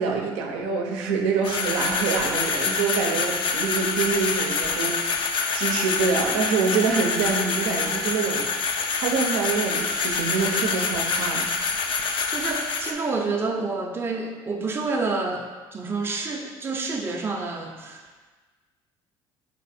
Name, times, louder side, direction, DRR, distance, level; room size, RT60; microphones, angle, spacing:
voice 1, 0.0-8.4 9.0-11.5, right 5 dB, 85° right, 1 dB, 0.6 m, -26 dB
sound 1, 1.4-12.9, left 4 dB, 50° left, 0.4 m, -26 dB
voice 2, 12.3-18.3, right 3 dB, 20° right, 1 dB, 0.5 m, -29 dB
4.4 x 2.4 x 4.1 m, 1.3 s
supercardioid pair, 100°, 11 cm